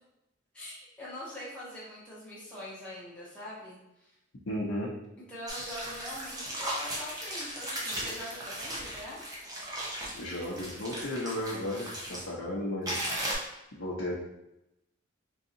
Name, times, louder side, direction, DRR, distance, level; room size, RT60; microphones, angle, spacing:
voice 1, 0.5-4.1 5.3-9.2, left 1 dB, 5° left, -8 dB, 0.9 m, -43 dB
voice 2, 4.5-4.9 10.1-13.1 13.7-14.1, left 1 dB, 75° left, -6 dB, 0.7 m, -34 dB
sound 1, 5.5-12.2 12.9-13.3, right 1 dB, 20° right, 0.6 m, -37 dB
3.9 x 2.7 x 2.6 m, 0.88 s
head